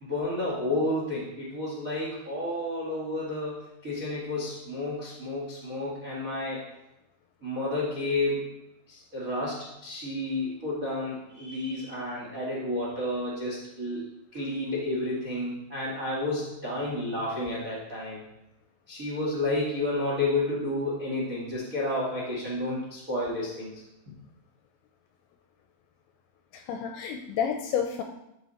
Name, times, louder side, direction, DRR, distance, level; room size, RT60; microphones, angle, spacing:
voice 1, 0.0-6.6 7.4-8.5 8.9-14.0 14.3-18.2 18.9-23.7, left 1 dB, 70° right, -4 dB, 0.7 m, -31 dB
voice 2, 26.5-28.0, left 7 dB, 80° left, 4 dB, 2.6 m, -30 dB
13.0 x 5.8 x 4.3 m, 0.87 s
omnidirectional pair, 5.7 m